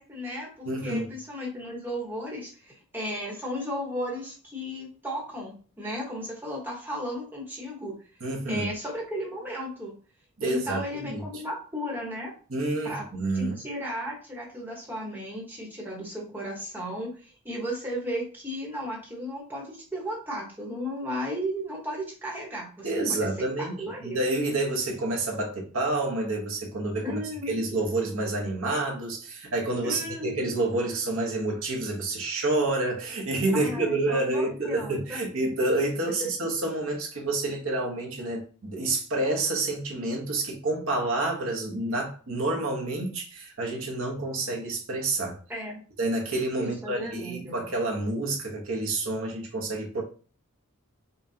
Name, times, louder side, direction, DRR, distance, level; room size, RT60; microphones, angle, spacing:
voice 1, 0.0-8.0 8.5-9.9 10.4-12.3 12.8-13.1 13.3-24.2 27.0-27.6 29.8-30.5 33.5-35.2 45.5-45.8 46.6-47.6, equal, 10° right, 1.2 m, -35 dB
voice 2, 0.6-1.1 8.2-8.7 10.4-11.2 12.5-13.6 22.8-27.2 27.5-45.4 46.0-50.0, right 2 dB, 65° right, 1.1 m, -28 dB
5.4 x 2.4 x 2.8 m
head